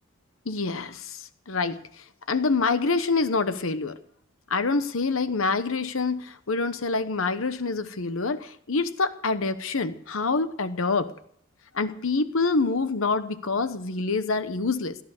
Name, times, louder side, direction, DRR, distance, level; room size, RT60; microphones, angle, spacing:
voice 1, 0.5-4.0 4.5-11.1 11.7-15.0, left 3 dB, 70° left, 12 dB, 1.0 m, -26 dB
17.5 x 12.5 x 6.6 m, 0.67 s
head